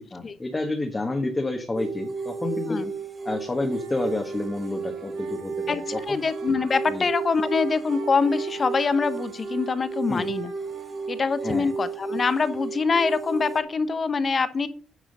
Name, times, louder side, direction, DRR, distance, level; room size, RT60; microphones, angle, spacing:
voice 1, 0.0-2.8 3.2-6.2 6.9-7.1 10.1-10.3 11.4-11.7, left 2 dB, 20° left, 3 dB, 1.5 m, -29 dB
sound 1, 1.7-13.6, right 5 dB, 30° right, 2.0 m, -33 dB
violin D string melody, 3.6-13.4, right 4 dB, 90° right, 3.6 m, -47 dB
voice 2, 5.7-10.5 11.1-14.7, left 4 dB, 40° left, 13 dB, 0.9 m, -24 dB
9.6 x 4.9 x 5.5 m, 0.42 s
cardioid pair, 90°, 0 cm